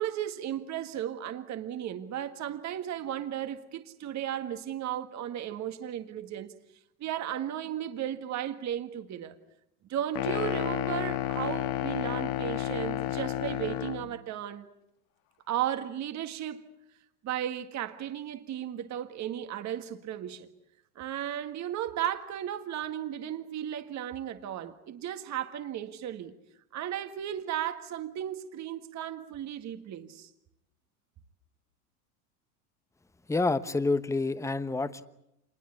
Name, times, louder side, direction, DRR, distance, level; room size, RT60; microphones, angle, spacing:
voice 1, 0.0-6.5 7.0-9.4 9.9-14.7 15.5-16.7 17.2-20.5 21.0-26.3 26.7-30.3, right 11 dB, 40° right, 1.8 m, -35 dB
sound 1, 10.1-14.1, left 13 dB, 60° left, 1.7 m, -31 dB
voice 2, 33.3-35.0, left 3 dB, 5° left, 1.1 m, -28 dB
27.0 x 21.0 x 8.6 m
hypercardioid pair, 90°, 45 cm